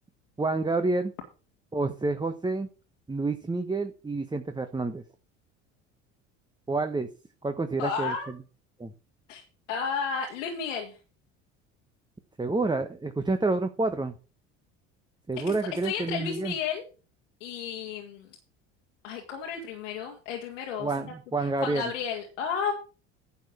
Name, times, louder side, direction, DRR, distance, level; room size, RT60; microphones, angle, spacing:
voice 1, 0.4-1.1 1.7-2.7 3.1-5.0 6.7-7.1 7.4-8.4 8.8-8.9 12.4-14.1 15.3-16.5 20.8-21.8, right 3 dB, 10° right, 7 dB, 1.2 m, -28 dB
voice 2, 7.8-8.3 9.3-9.4 9.7-11.0 15.8-16.8 17.4-18.3 19.0-21.1 21.4-22.7, left 6 dB, 85° left, 1 dB, 2.1 m, -32 dB
10.5 x 6.6 x 6.1 m, 0.34 s
hypercardioid pair, 75°, 36 cm